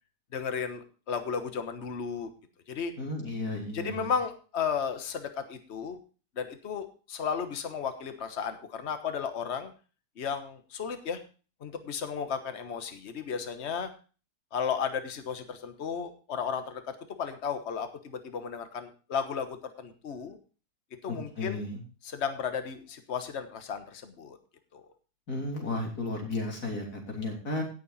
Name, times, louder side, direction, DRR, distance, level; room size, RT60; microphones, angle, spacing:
voice 1, 0.3-2.3 2.7-2.9 3.7-6.0 6.4-9.7 10.2-11.2 11.6-13.9 14.5-20.4 21.0-21.6 22.0-24.4 24.7-24.8, left 6 dB, 45° left, 8 dB, 1.5 m, -34 dB
voice 2, 3.0-4.1 21.1-21.8 25.3-27.6, left 2 dB, 65° left, 0 dB, 3.9 m, -34 dB
16.5 x 7.0 x 4.1 m, 0.36 s
omnidirectional pair, 1.8 m